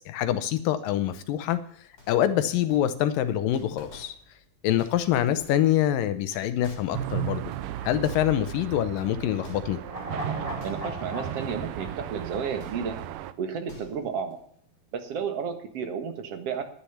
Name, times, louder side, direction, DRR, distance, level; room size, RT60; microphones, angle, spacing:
voice 1, 0.0-1.6 2.1-4.2 4.6-7.5 7.8-9.8, left 11 dB, 75° left, 12 dB, 2.4 m, -25 dB
sound 1, 2.0-2.3 2.7-3.2 3.5-4.4 4.7-5.8 6.1-8.6 9.0-10.0 10.6-11.2 11.5-11.7 12.6-13.1 13.5-14.3, left 2 dB, 25° left, 6.4 m, -49 dB
sound 2, 6.9-13.3, right 12 dB, 75° right, 2.1 m, -35 dB
sound 3, 9.8-13.2 13.5-13.6, right 1 dB, 10° right, 3.6 m, -38 dB
voice 2, 10.6-13.0 13.4-14.4 14.9-16.6, right 6 dB, 50° right, 7 dB, 2.2 m, -32 dB
11.5 x 10.5 x 7.1 m, 0.64 s
omnidirectional pair, 4.2 m